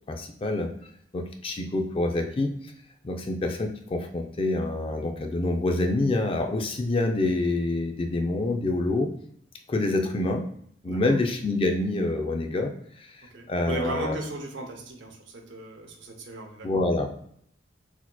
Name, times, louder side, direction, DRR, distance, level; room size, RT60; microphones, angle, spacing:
voice 1, 0.1-0.7 1.1-2.5 3.0-9.1 9.7-10.5 10.8-12.7 13.0-13.1 13.5-14.2 16.6-17.1, left 2 dB, 30° left, 5 dB, 0.4 m, -26 dB
voice 2, 13.3-16.7, right 2 dB, 70° right, 2 dB, 0.8 m, -36 dB
4.0 x 2.8 x 2.2 m, 0.67 s
head